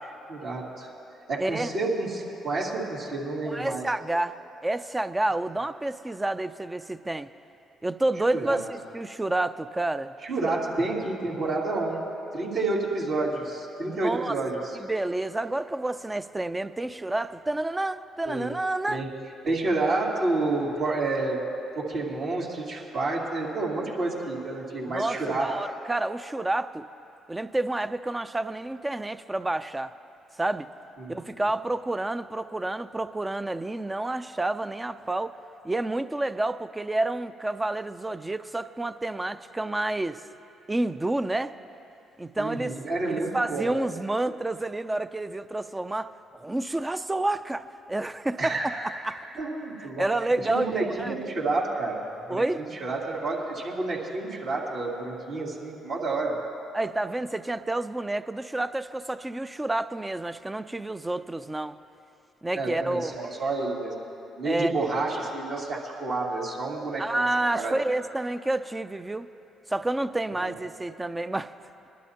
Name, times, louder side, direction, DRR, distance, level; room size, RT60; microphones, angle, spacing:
voice 1, 0.0-0.9 1.3-3.9 8.3-8.6 10.2-12.0 12.3-14.6 18.2-18.5 18.9-19.1 19.4-21.4 21.7-25.5 31.0-31.4 42.4-43.7 48.4-49.0 49.4-50.0 50.4-52.4 52.8-56.4 62.5-63.9 64.4-67.3 67.5-67.7 70.4-70.5, right 2 dB, 65° right, -5 dB, 2.8 m, -29 dB
voice 2, 1.4-1.7 3.4-7.3 7.8-10.1 10.4-10.5 13.8-14.3 14.8-19.0 24.9-26.8 27.3-29.9 30.4-30.7 31.1-35.3 35.6-40.2 40.7-41.5 42.2-42.8 43.1-48.6 49.0-49.2 49.8-51.1 52.3-52.6 56.7-61.8 62.4-63.1 64.4-64.7 67.0-69.3 69.7-71.5, right 2 dB, 15° right, 11 dB, 0.4 m, -29 dB
22.0 x 11.5 x 2.9 m, 2.9 s
supercardioid pair, 65°, 0 cm